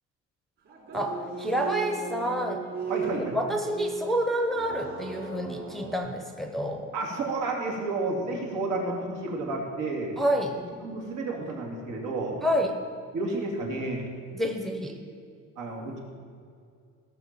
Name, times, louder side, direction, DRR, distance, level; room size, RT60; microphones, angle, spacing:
sound 1, 0.7-5.9, right 5 dB, 45° right, 3.7 m, -37 dB
voice 1, 0.9-2.6 3.3-6.9 10.2-10.6 12.4-12.8 14.3-15.0, equal, ahead, 4 dB, 0.7 m, -28 dB
voice 2, 2.9-3.4 6.9-10.1 10.8-12.4 13.1-14.0 15.6-16.0, right 2 dB, 80° right, 0 dB, 2.7 m, -31 dB
16.0 x 6.1 x 7.5 m, 2.3 s
cardioid pair, 175°, 30 cm